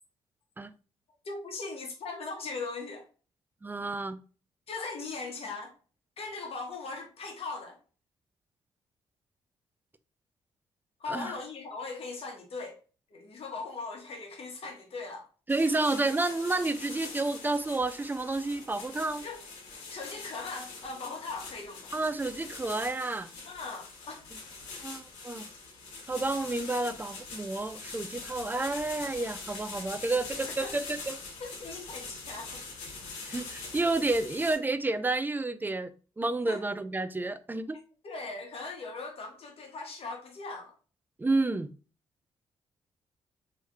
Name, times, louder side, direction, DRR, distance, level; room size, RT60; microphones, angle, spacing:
voice 1, 1.2-3.0 4.7-5.7 6.2-7.8 11.0-12.8 13.1-15.3 19.2-19.4 19.9-21.9 23.4-24.3 30.6-30.7 31.4-32.6 36.5-36.6 38.0-40.7, left 3 dB, 55° left, 1.1 m, -39 dB
voice 2, 3.6-4.2 11.1-11.3 15.5-19.2 21.9-23.3 24.8-25.5 26.1-31.2 33.2-35.9 36.2-37.8 41.2-41.7, right 2 dB, 15° right, 0.3 m, -30 dB
sound 1, 15.5-34.5, left 3 dB, 80° left, 1.0 m, -43 dB
3.1 x 2.8 x 2.3 m
supercardioid pair, 55°, 12 cm